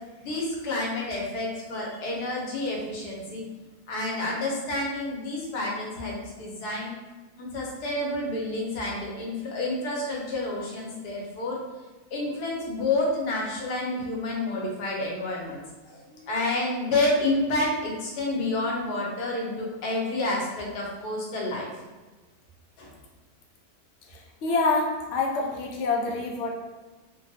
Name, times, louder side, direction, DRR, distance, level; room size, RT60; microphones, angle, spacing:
voice 1, 0.2-3.4 3.9-6.9 7.4-11.6 12.1-15.6 15.9-21.7 22.8-22.9, left 2 dB, 85° left, -3 dB, 1.3 m, -29 dB
voice 2, 24.4-26.5, left 3 dB, 65° left, -1 dB, 0.8 m, -26 dB
3.2 x 2.2 x 2.6 m, 1.2 s
omnidirectional pair, 1.6 m